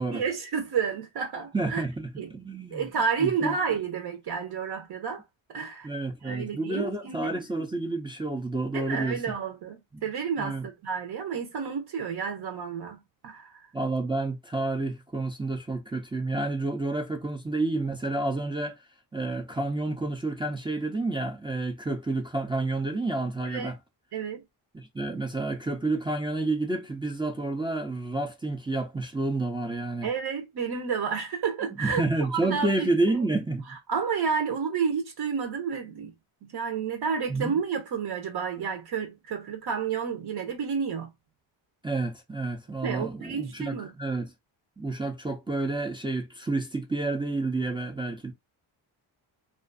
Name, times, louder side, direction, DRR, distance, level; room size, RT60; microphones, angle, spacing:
voice 1, 0.1-1.8 2.2-2.3 2.7-5.2 5.5-5.9 6.2-7.3 8.7-13.0 13.2-13.6 23.4-23.7 24.1-24.4 30.0-33.2 33.7-36.1 36.4-41.1 42.8-43.9, right 6 dB, 55° right, 0.8 m, -30 dB
voice 2, 1.5-2.9 3.2-3.5 5.8-9.2 9.9-10.0 10.4-10.6 13.7-18.8 19.1-23.8 24.7-30.1 31.8-33.6 37.3-37.6 41.8-44.3 44.8-48.3, right 2 dB, 10° right, 0.4 m, -29 dB
2.5 x 2.4 x 2.4 m
cardioid pair, 110°, 47 cm